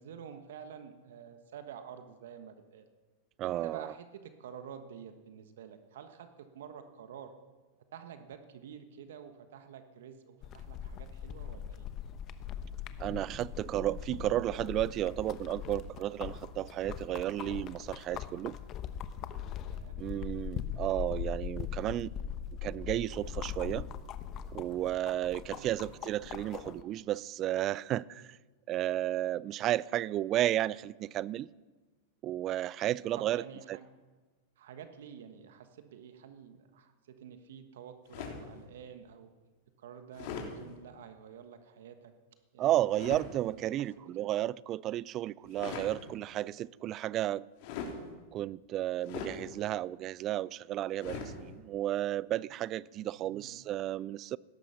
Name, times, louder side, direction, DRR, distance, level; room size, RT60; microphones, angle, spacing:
voice 1, 0.0-2.8 3.4-7.3 7.9-11.9 19.7-20.0 25.5-25.7 33.2-33.9 34.6-39.3 39.8-42.1 42.5-42.8 43.5-44.3 53.1-53.6, right 8 dB, 75° right, 1.3 m, -49 dB
voice 2, 3.4-3.9 13.0-18.6 20.0-22.1 22.6-23.9 24.5-28.4 28.7-31.5 32.2-33.4 33.7-33.8 42.6-47.4 48.3-54.4, right 13 dB, 40° right, 0.4 m, -33 dB
sound 1, 10.4-26.8, left 9 dB, 40° left, 1.0 m, -41 dB
sound 2, 38.1-38.5 40.1-40.5 42.9-43.3 45.4-45.9 47.6-48.0 49.0-49.4 51.0-51.3, left 6 dB, 55° left, 3.4 m, -40 dB
17.0 x 13.5 x 5.7 m
hypercardioid pair, 110°, 0 cm